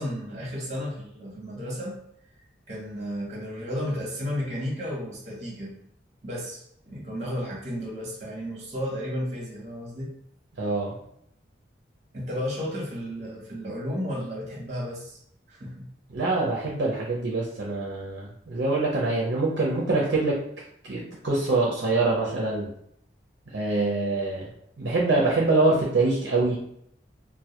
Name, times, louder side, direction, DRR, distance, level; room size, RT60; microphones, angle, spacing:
voice 1, 0.0-2.0 2.7-5.8 6.2-10.1 12.1-15.2 15.5-15.9, equal, 40° right, -4 dB, 0.8 m, -33 dB
voice 2, 10.6-11.0 16.1-20.4 20.8-22.7 23.5-24.5 24.8-26.6, right 2 dB, 65° right, -4 dB, 0.5 m, -24 dB
2.2 x 2.1 x 2.7 m, 0.70 s
head